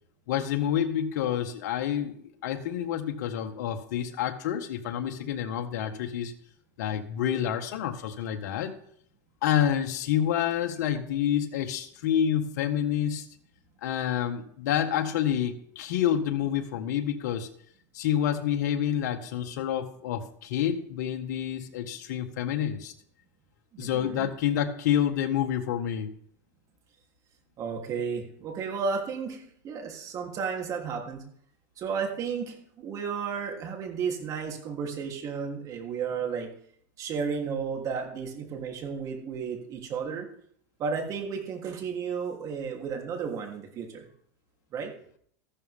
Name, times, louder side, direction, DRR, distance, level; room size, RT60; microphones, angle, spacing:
voice 1, 0.3-6.3 6.8-8.7 9.4-13.2 13.8-17.5 17.9-22.9 23.8-26.1, left 10 dB, 70° left, 5 dB, 1.8 m, -28 dB
voice 2, 23.7-24.3 27.6-31.3 31.8-36.5 37.0-40.3 40.8-44.1 44.7-44.9, right 6 dB, 35° right, 2 dB, 3.3 m, -33 dB
14.5 x 12.5 x 3.7 m, 0.64 s
supercardioid pair, 130°, 10 cm